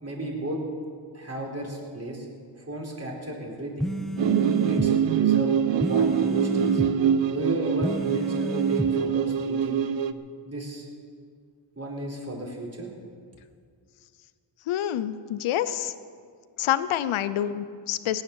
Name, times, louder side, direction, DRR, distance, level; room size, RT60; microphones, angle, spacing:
voice 1, 0.0-0.6 1.1-2.3 2.6-3.9 4.6-6.8 7.3-9.9 10.4-10.9 11.8-12.9, right 1 dB, 30° right, -1 dB, 4.1 m, -34 dB
sound 1, 3.8-4.9 5.8-6.9 7.8-8.9, equal, ahead, 0.8 m, -30 dB
sound 2, 4.2-10.1, right 8 dB, 70° right, 0.8 m, -24 dB
voice 2, 14.7-15.9 16.6-18.2, left 11 dB, 90° left, 14 dB, 0.7 m, -27 dB
17.0 x 10.0 x 7.2 m, 2.1 s
cardioid pair, 70°, 47 cm